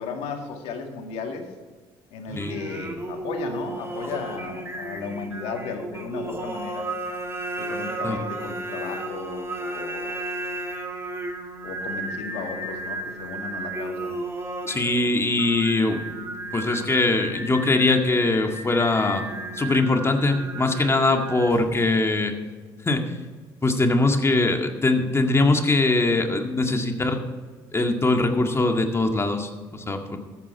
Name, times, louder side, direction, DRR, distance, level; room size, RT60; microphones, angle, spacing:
voice 1, 0.0-1.5 2.1-6.9 7.6-10.2 11.6-14.2, left 5 dB, 75° left, 3 dB, 2.0 m, -35 dB
Singing, 2.3-21.9, right 2 dB, 25° right, 2.4 m, -34 dB
voice 2, 8.0-8.5 14.7-16.3 16.5-19.2 19.5-22.3 22.8-23.1 23.6-27.2 27.7-30.2, left 2 dB, 25° left, 4 dB, 1.9 m, -22 dB
13.5 x 8.6 x 4.6 m, 1.4 s
supercardioid pair, 65°, 10 cm